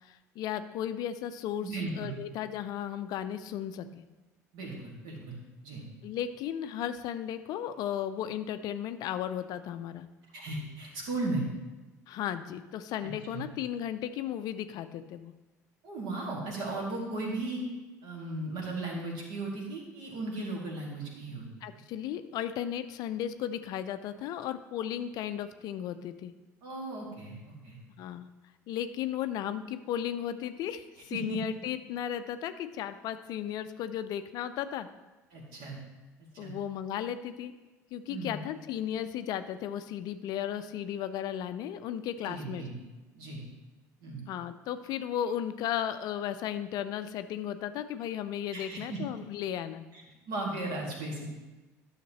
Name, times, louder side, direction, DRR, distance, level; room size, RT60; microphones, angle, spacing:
voice 1, 0.0-4.0 6.0-10.1 12.1-15.3 21.6-26.3 28.0-28.3 28.7-34.9 36.4-37.5 37.9-42.6 44.3-49.8, left 10 dB, 50° left, 11 dB, 0.5 m, -35 dB
voice 2, 1.6-2.2 4.5-5.4 5.6-5.8 10.3-11.4 13.0-13.5 15.8-17.7 18.0-21.5 26.6-27.8 31.1-31.4 35.3-35.8 36.3-36.5 38.1-38.4 42.3-42.7 43.1-43.4 44.0-44.2 48.5-49.0 49.9-51.3, right 2 dB, 55° right, -1 dB, 2.3 m, -36 dB
12.0 x 6.5 x 3.0 m, 1.2 s
figure-of-eight pair, 65°, 9 cm